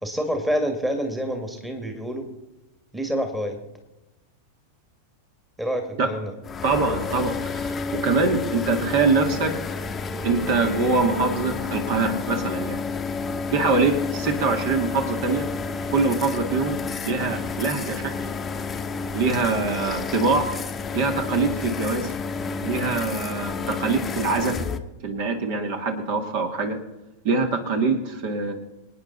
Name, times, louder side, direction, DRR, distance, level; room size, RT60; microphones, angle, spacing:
voice 1, 0.0-2.3 2.9-3.6 5.6-6.3, equal, 5° right, 5 dB, 2.1 m, -27 dB
sound 1, 6.4-24.8, left 4 dB, 20° left, 1.1 m, -30 dB
voice 2, 6.6-9.5 10.2-12.8 13.5-15.5 15.9-16.8 17.0-18.1 19.1-20.5 20.9-22.1 22.6-24.6 25.0-26.8 27.2-28.5, right 3 dB, 50° right, 5 dB, 2.5 m, -24 dB
27.0 x 9.6 x 4.1 m, 1.0 s
figure-of-eight pair, 90°, 0 cm